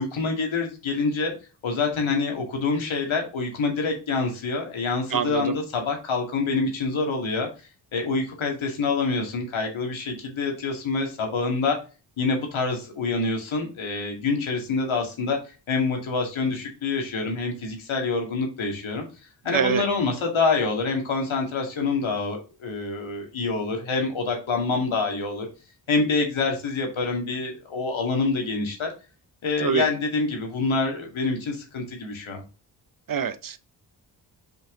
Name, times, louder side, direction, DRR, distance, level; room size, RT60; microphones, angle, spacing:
voice 1, 0.0-1.3 1.6-7.5 7.9-11.8 12.2-15.4 15.7-19.0 19.4-25.5 25.9-28.9 29.4-32.4, left 4 dB, 70° left, 2.4 m, -26 dB
voice 2, 5.1-5.5 19.5-19.8 29.6-29.9 33.1-33.6, right 7 dB, 40° right, 0.7 m, -25 dB
5.4 x 5.2 x 3.8 m
supercardioid pair, 40°, 50 cm